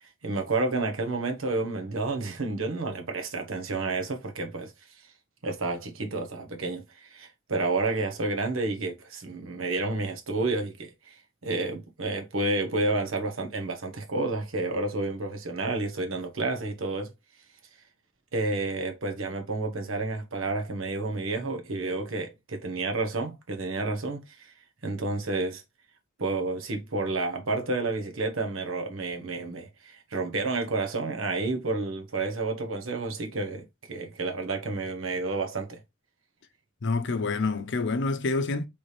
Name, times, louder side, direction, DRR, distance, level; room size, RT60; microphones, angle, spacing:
voice 1, 0.2-4.7 5.4-11.2 11.4-17.1 18.3-24.5 24.8-25.6 26.2-35.8, right 3 dB, 85° right, 1.1 m, -30 dB
voice 2, 36.8-38.6, left 3 dB, 65° left, 0.6 m, -27 dB
4.2 x 3.4 x 3.3 m
head